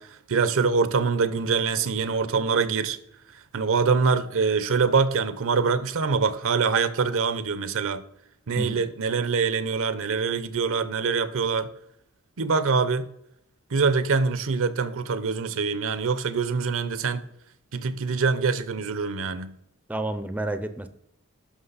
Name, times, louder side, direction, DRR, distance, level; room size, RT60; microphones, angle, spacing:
voice 1, 0.0-3.0 3.5-8.0 8.5-11.7 12.4-13.1 13.7-17.2 17.7-19.5, right 5 dB, 65° right, 0.7 m, -24 dB
voice 2, 19.9-20.9, right 2 dB, 5° right, 0.5 m, -30 dB
11.5 x 5.9 x 4.0 m
head